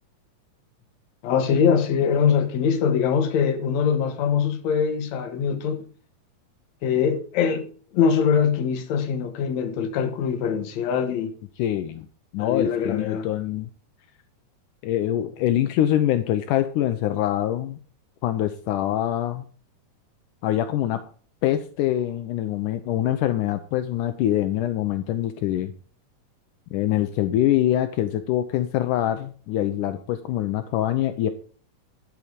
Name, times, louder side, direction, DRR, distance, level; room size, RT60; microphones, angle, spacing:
voice 1, 1.2-5.8 6.8-7.7 7.9-11.3 12.4-13.3, left 7 dB, 65° left, 2.4 m, -23 dB
voice 2, 11.6-12.1 12.3-13.7 14.8-17.8 18.2-19.5 20.4-21.0 21.4-25.7 26.7-31.3, left 12 dB, 80° left, 2.2 m, -24 dB
11.5 x 7.8 x 5.1 m
omnidirectional pair, 3.7 m